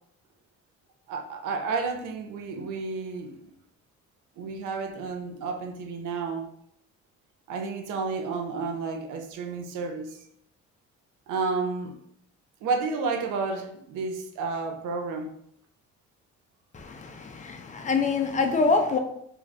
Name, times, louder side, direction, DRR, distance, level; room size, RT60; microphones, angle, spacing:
voice 1, 1.1-3.4 4.4-6.5 7.5-10.2 11.3-12.0 12.6-15.3, right 4 dB, 85° right, 0.5 m, -31 dB
voice 2, 16.7-19.0, left 4 dB, 25° left, 0.5 m, -25 dB
2.5 x 2.3 x 3.2 m
cardioid pair, 90°, 30 cm